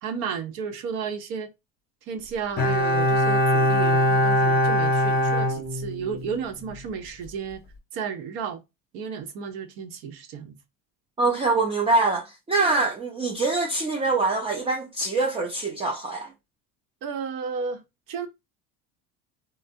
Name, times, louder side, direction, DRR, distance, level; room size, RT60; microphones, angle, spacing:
voice 1, 0.0-1.5 2.1-7.6 7.9-8.6 8.9-10.6 17.0-17.8 18.1-18.3, right 6 dB, 70° right, 0.8 m, -33 dB
Bowed string instrument, 2.6-6.3 6.6-6.7, left 1 dB, 25° left, 0.8 m, -22 dB
voice 2, 11.2-16.3, right 3 dB, 15° right, 0.4 m, -24 dB
3.3 x 2.0 x 2.6 m
supercardioid pair, 105°, 37 cm